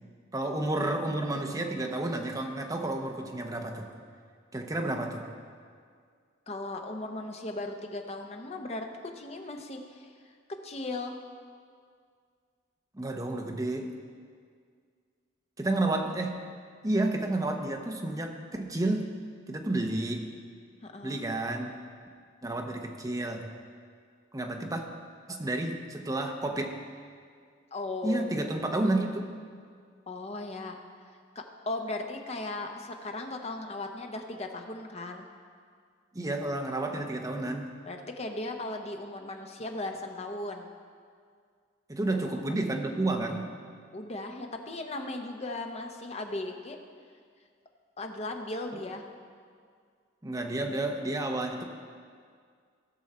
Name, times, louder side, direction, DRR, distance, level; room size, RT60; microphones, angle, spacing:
voice 1, 0.3-3.9 4.5-5.3 12.9-13.9 15.6-16.5 16.8-19.1 19.5-20.3 21.0-21.7 22.4-23.5 24.3-24.8 25.3-26.8 28.0-29.4 36.1-37.8 41.9-43.6 50.2-51.6, right 2 dB, 20° right, 3 dB, 0.8 m, -31 dB
voice 2, 6.5-10.1 10.6-11.2 20.8-21.2 27.7-28.8 30.1-30.8 31.3-35.3 37.9-40.7 43.9-46.8 48.0-49.0, left 2 dB, 35° left, 4 dB, 0.9 m, -37 dB
16.0 x 6.4 x 4.3 m, 2.1 s
head